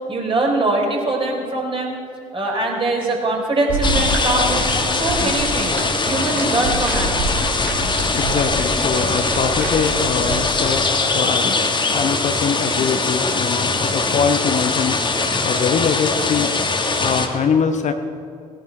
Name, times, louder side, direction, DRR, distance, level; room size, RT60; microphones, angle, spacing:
voice 1, 0.1-2.0 2.3-7.5, right 2 dB, 30° right, -1 dB, 3.7 m, -22 dB
sound 1, 3.7-10.4, right 2 dB, 65° right, 2.4 m, -27 dB
sound 2, 3.8-17.3, left 3 dB, 25° left, 1.5 m, -21 dB
voice 2, 8.1-10.8 11.1-11.6 11.9-16.5 16.8-17.9, left 6 dB, 45° left, 7 dB, 0.9 m, -23 dB
17.5 x 11.0 x 4.6 m, 2.4 s
figure-of-eight pair, 50°, 17 cm